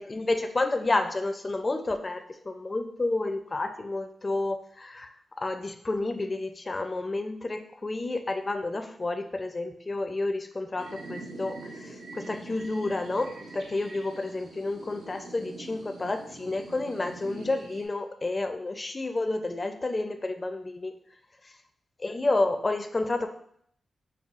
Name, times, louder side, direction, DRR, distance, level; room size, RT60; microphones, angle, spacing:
voice 1, 0.0-5.1 5.4-20.9 22.0-23.3, left 2 dB, 35° left, 7 dB, 0.4 m, -30 dB
sound 1, 10.8-17.9, right 2 dB, 85° right, 0.7 m, -44 dB
5.4 x 2.3 x 2.4 m, 0.65 s
cardioid pair, 70°, 0 cm